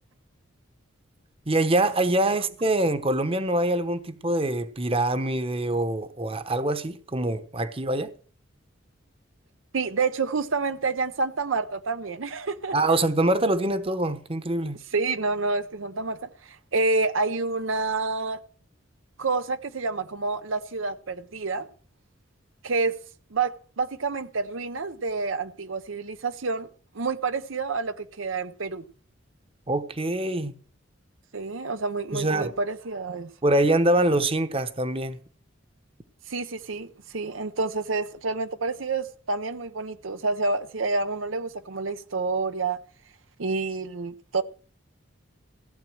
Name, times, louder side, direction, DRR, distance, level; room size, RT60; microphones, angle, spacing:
voice 1, 1.5-8.1 12.7-14.8 29.7-30.5 32.1-32.5 33.4-35.2, right 1 dB, 30° right, 1.0 m, -24 dB
voice 2, 9.7-12.8 14.9-18.4 19.2-21.7 22.6-23.0 23.3-26.7 26.9-28.8 31.3-33.3 36.3-42.8 43.4-44.4, right 3 dB, 80° right, 0.8 m, -28 dB
15.5 x 8.3 x 6.2 m
head